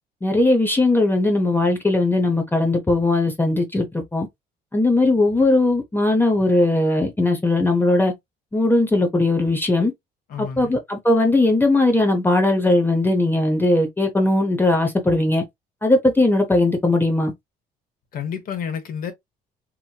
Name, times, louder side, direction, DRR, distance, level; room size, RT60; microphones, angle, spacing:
voice 1, 0.2-4.3 4.7-8.1 8.5-9.9 10.4-15.4 15.8-17.3, left 2 dB, 10° left, 0.7 m, -19 dB
voice 2, 10.3-10.7 18.1-19.1, left 7 dB, 55° left, 1.0 m, -30 dB
3.0 x 2.6 x 2.2 m
cardioid pair, 110°, 17 cm